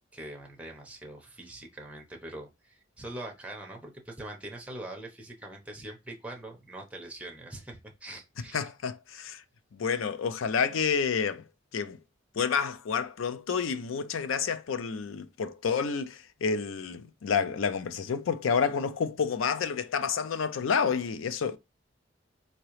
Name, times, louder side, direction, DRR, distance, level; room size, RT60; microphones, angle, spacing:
voice 1, 0.1-8.7, right 1 dB, 5° right, 0.9 m, -43 dB
voice 2, 8.5-9.4 9.7-11.4 11.7-12.0 12.3-21.6, left 6 dB, 90° left, 0.4 m, -29 dB
3.8 x 2.9 x 3.1 m
head